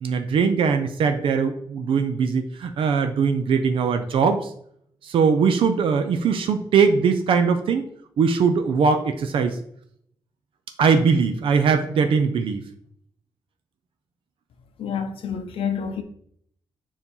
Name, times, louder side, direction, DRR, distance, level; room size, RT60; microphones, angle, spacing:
voice 1, 0.0-4.5 5.0-7.8 8.2-9.6 10.8-12.6, right 5 dB, 70° right, 0.6 m, -21 dB
voice 2, 14.8-16.0, left 7 dB, 75° left, 0.7 m, -28 dB
7.1 x 2.8 x 5.3 m
cardioid pair, 120°, 9 cm